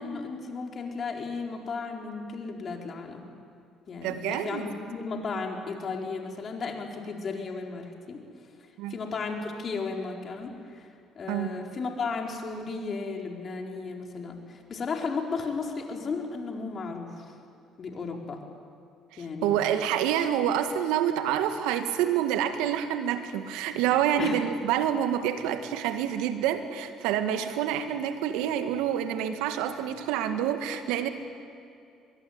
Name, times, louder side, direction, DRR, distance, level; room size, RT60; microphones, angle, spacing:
voice 1, 0.0-3.2 3.9-8.2 8.9-10.9 11.2-17.3 17.8-18.4 19.2-19.5 24.2-24.4, left 4 dB, 45° left, 2 dB, 4.5 m, -34 dB
voice 2, 4.0-4.7 8.8-8.9 11.3-11.5 19.1-31.1, right 10 dB, 75° right, 8 dB, 1.9 m, -27 dB
23.5 x 22.0 x 9.6 m, 2.5 s
hypercardioid pair, 65°, 0 cm